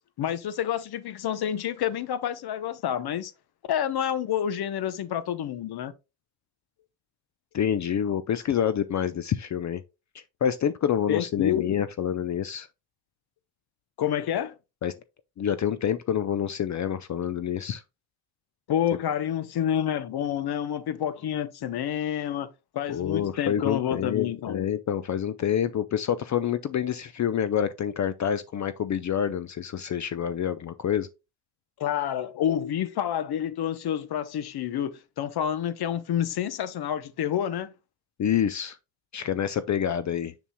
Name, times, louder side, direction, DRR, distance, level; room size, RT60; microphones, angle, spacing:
voice 1, 0.2-3.3 3.7-5.9 11.1-11.8 14.0-14.5 18.7-24.6 31.8-37.7, left 10 dB, 55° left, 0.9 m, -28 dB
voice 2, 7.5-9.8 10.1-12.7 14.8-14.9 15.4-17.8 22.9-31.1 38.2-38.8 39.1-40.3, left 9 dB, 40° left, 0.5 m, -27 dB
7.1 x 6.1 x 2.2 m
cardioid pair, 110°, 45 cm